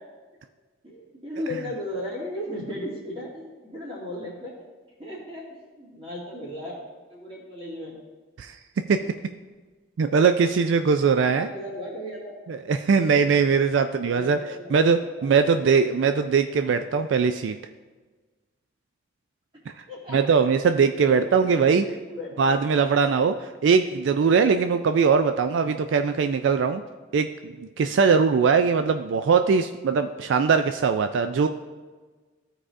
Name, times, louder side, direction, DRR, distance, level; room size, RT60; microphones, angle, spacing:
voice 1, 0.8-4.5 5.0-6.8 7.1-8.0 9.0-9.3 11.2-12.4 13.7-15.6 16.5-16.7 19.9-20.2 21.0-22.6 25.6-25.7, left 1 dB, 30° right, -5 dB, 2.2 m, -36 dB
voice 2, 10.0-11.5 12.7-14.4 14.7-17.5 20.1-21.8 22.4-26.8 27.1-31.5, right 5 dB, 80° right, 8 dB, 0.3 m, -21 dB
14.5 x 4.8 x 2.5 m, 1.3 s
head